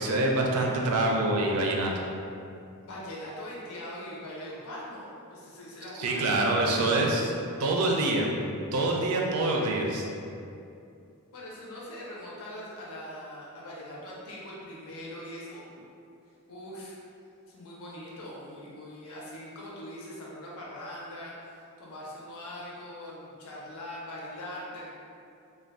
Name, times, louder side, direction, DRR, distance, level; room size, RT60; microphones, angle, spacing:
voice 1, 0.0-1.9 6.0-7.2 7.6-8.3 8.7-10.0, right 2 dB, 80° right, 0 dB, 0.4 m, -25 dB
voice 2, 2.8-7.2 11.3-15.8 16.5-16.9 17.5-24.9, left 1 dB, 75° left, -5 dB, 0.6 m, -41 dB
2.4 x 2.2 x 3.4 m, 2.6 s
head